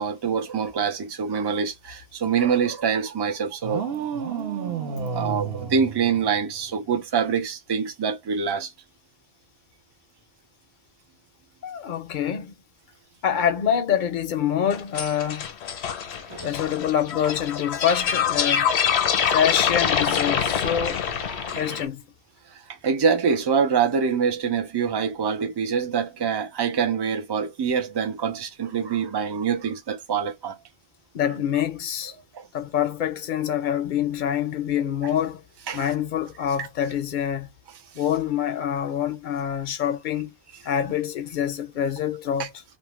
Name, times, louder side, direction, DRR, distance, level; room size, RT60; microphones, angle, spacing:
voice 1, 0.0-4.2 5.1-8.7 16.3-16.5 20.4-20.5 21.3-21.6 22.8-30.6 32.3-32.5 35.7-35.9 42.4-42.5, right 6 dB, 45° right, 0.3 m, -25 dB
sound 1, 3.6-6.8, right 6 dB, 65° right, 0.9 m, -31 dB
voice 2, 11.6-12.5 13.2-15.5 16.4-18.7 19.3-21.1 21.5-22.0 31.1-32.1 32.5-35.4 35.7-37.5 37.9-40.3 40.6-42.6, left 9 dB, 55° left, 0.6 m, -26 dB
sound 2, 14.7-21.9, left 8 dB, 80° left, 0.9 m, -25 dB
2.5 x 2.1 x 3.0 m
omnidirectional pair, 1.1 m